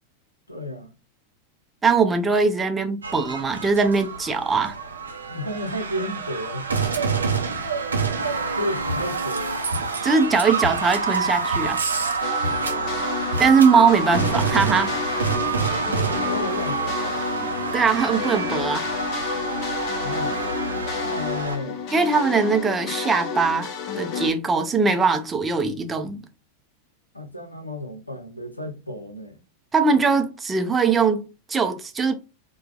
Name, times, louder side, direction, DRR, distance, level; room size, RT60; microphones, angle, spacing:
voice 1, 0.5-1.0 5.3-6.7 8.5-9.6 12.6-13.1 16.2-17.2 20.0-20.5 21.0-21.8 27.1-29.4, left 1 dB, 85° left, 0.7 m, -32 dB
voice 2, 1.8-4.7 10.0-11.8 13.4-14.9 17.7-18.9 21.9-26.2 29.7-32.1, right 5 dB, 15° right, 0.6 m, -21 dB
sound 1, 3.0-21.6, right 4 dB, 75° right, 0.6 m, -27 dB
sound 2, 12.2-24.3, left 6 dB, 40° left, 0.6 m, -31 dB
4.5 x 2.3 x 2.4 m
figure-of-eight pair, 90°, 0 cm